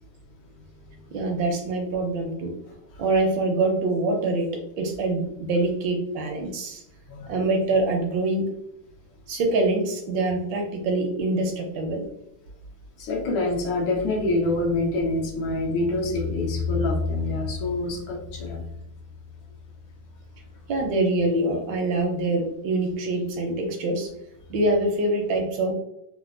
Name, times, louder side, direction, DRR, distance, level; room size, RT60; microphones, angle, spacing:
voice 1, 1.1-2.5 3.0-6.8 7.3-8.5 9.3-12.0 20.7-24.1 24.5-25.7, right 2 dB, 75° right, 2 dB, 1.1 m, -25 dB
voice 2, 13.0-18.6, left 2 dB, 85° left, -1 dB, 1.7 m, -26 dB
4.4 x 2.1 x 2.4 m, 0.80 s
omnidirectional pair, 2.4 m